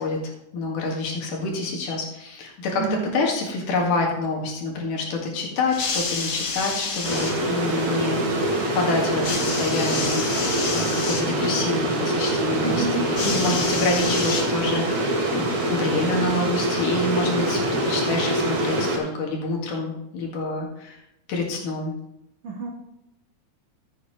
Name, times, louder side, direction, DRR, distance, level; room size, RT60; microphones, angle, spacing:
voice 1, 0.0-8.4 8.7-21.0 21.3-21.9, left 3 dB, 85° left, -1 dB, 3.5 m, -27 dB
sound 1, 5.7-7.4 9.2-11.3 13.2-14.8 15.8-15.9, left 4 dB, 50° left, 1.3 m, -29 dB
sound 2, 7.0-19.0, right 1 dB, 60° right, 3.2 m, -24 dB
voice 2, 12.6-13.1 22.4-22.7, right 4 dB, 85° right, 0 dB, 3.4 m, -28 dB
14.5 x 8.6 x 3.2 m, 0.83 s
omnidirectional pair, 3.6 m